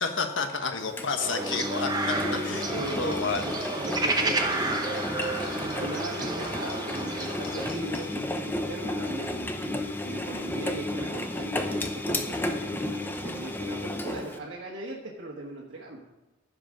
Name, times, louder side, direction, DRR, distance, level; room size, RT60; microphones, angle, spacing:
voice 1, 0.0-2.1 2.5-2.6 2.9-3.4, left 4 dB, 75° left, 6 dB, 1.2 m, -30 dB
Engine, 1.0-14.4, left 2 dB, 10° left, 0.6 m, -32 dB
sound 1, 1.2-7.7, right 2 dB, 20° right, 0.8 m, -31 dB
voice 2, 2.1-4.9 5.5-16.0, right 2 dB, 80° right, -3 dB, 1.5 m, -39 dB
sound 2, 2.3-8.0, left 4 dB, 30° left, 3.9 m, -45 dB
14.5 x 5.2 x 6.2 m, 1.0 s
head